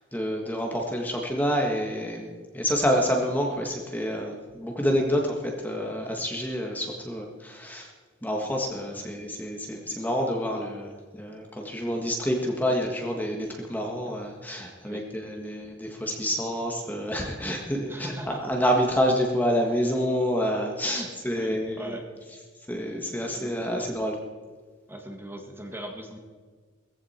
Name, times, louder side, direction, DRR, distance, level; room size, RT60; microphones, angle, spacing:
voice 1, 0.0-7.9 8.2-22.0 22.7-24.1, equal, 10° left, 1 dB, 1.5 m, -28 dB
voice 2, 17.9-18.4 20.8-22.1 23.3-23.9 24.9-26.2, right 1 dB, 10° right, 2 dB, 1.7 m, -40 dB
18.0 x 15.5 x 4.4 m, 1.5 s
head